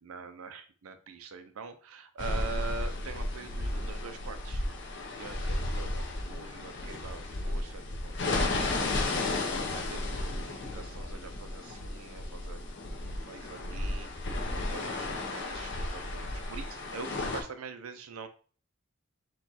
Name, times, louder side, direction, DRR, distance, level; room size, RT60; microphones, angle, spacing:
voice 1, 0.0-4.6 5.2-12.7 13.2-14.1 14.7-18.3, right 4 dB, 75° right, 8 dB, 0.5 m, -44 dB
sound 1, 2.2-17.4, left 2 dB, 55° left, 0.8 m, -34 dB
4.5 x 2.3 x 4.0 m, 0.41 s
head